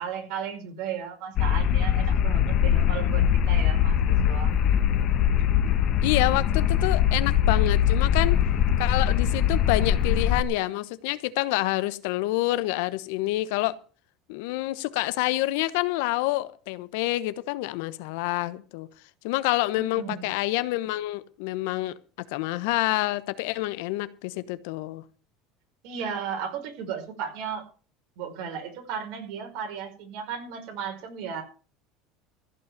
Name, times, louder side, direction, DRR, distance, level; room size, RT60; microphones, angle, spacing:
voice 1, 0.0-4.5 19.8-20.3 25.8-27.6 28.2-31.4, right 7 dB, 70° right, 5.0 m, -35 dB
sound 1, 1.4-10.4, left 9 dB, 50° left, 1.5 m, -22 dB
voice 2, 6.0-8.4 8.8-13.8 14.3-18.9 19.2-21.9 22.3-25.0, left 18 dB, 75° left, 1.0 m, -27 dB
15.0 x 5.6 x 9.4 m
supercardioid pair, 120°, 0 cm